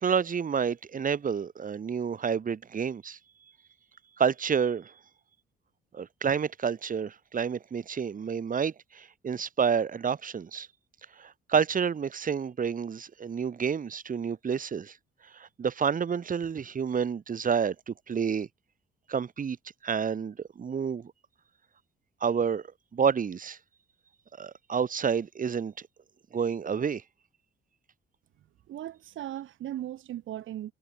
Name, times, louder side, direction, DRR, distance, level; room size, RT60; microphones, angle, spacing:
voice 1, 0.0-3.2 4.2-4.9 5.9-10.7 11.2-14.9 15.3-18.5 19.1-19.6 19.8-21.1 22.2-22.6 22.9-23.6 24.4-25.7 26.3-27.0, right 6 dB, 45° right, 2.8 m, -29 dB
voice 2, 28.7-30.7, right 12 dB, 75° right, 7.6 m, -37 dB
cardioid pair, 90°, 20 cm